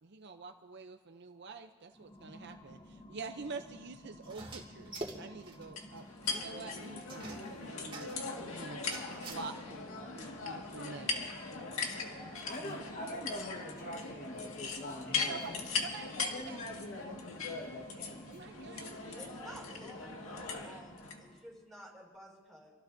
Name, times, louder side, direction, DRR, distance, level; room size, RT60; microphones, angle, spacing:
voice 1, 0.0-8.8 9.2-11.3 12.6-12.8 15.3-15.5 15.8-17.2 18.3-19.3, right 4 dB, 55° right, 7 dB, 0.7 m, -47 dB
sound 1, 1.9-21.6, equal, 20° left, 0.7 m, -54 dB
sound 2, 4.2-5.7 6.0-6.1 6.2-6.3 7.1-8.3 8.8-9.3, right 2 dB, 25° right, 2.2 m, -45 dB
sound 3, 5.8-21.2, left 4 dB, 85° left, 1.9 m, -40 dB
voice 2, 12.4-15.6 16.3-18.2, left 1 dB, 40° left, 0 dB, 1.5 m, -43 dB
voice 3, 19.2-22.7, right 1 dB, ahead, -2 dB, 5.8 m, -53 dB
27.5 x 17.0 x 2.7 m, 1.5 s
head